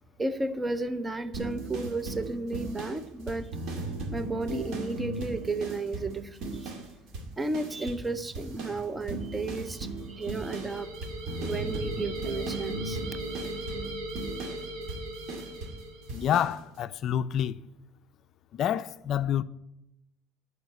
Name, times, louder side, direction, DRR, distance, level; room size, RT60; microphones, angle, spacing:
voice 1, 0.2-3.5 4.1-6.8 7.4-10.9 11.4-13.2, right 2 dB, 15° right, 0.6 m, -33 dB
sound 1, 1.3-6.9 7.1-8.1 8.3-15.8 16.1-16.5, right 3 dB, 60° right, 2.2 m, -37 dB
sound 2, 9.9-16.3, right 1 dB, 85° right, 3.2 m, -39 dB
voice 2, 16.1-17.6 18.5-19.4, left 10 dB, 50° left, 0.4 m, -28 dB
11.0 x 4.9 x 8.3 m
cardioid pair, 130°, 0 cm